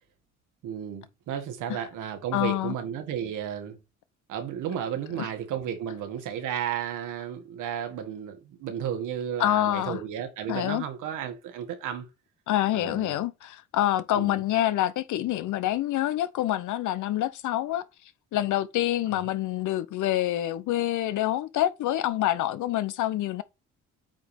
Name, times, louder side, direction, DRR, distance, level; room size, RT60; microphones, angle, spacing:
voice 1, 0.6-3.8 4.3-12.0 12.7-13.1 14.2-14.4 19.1-19.2, right 9 dB, 85° right, 1.9 m, -33 dB
voice 2, 2.3-2.7 5.2-5.3 9.4-10.0 10.5-10.8 12.5-17.8 18.3-23.4, left 13 dB, 80° left, 0.7 m, -26 dB
8.4 x 3.1 x 5.1 m
cardioid pair, 90°, 30 cm